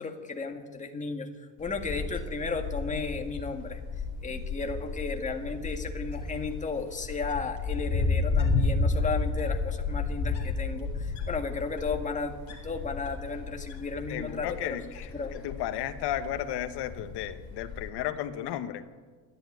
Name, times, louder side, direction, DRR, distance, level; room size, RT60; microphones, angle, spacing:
voice 1, 0.0-3.8 4.2-14.8 15.1-15.3, left 4 dB, 15° left, 4 dB, 1.9 m, -34 dB
Wind, 1.6-17.9, left 3 dB, 35° left, 4.0 m, -32 dB
voice 2, 14.1-18.8, left 11 dB, 55° left, 9 dB, 1.5 m, -34 dB
26.5 x 11.0 x 9.6 m, 1.5 s
cardioid pair, 140°, 47 cm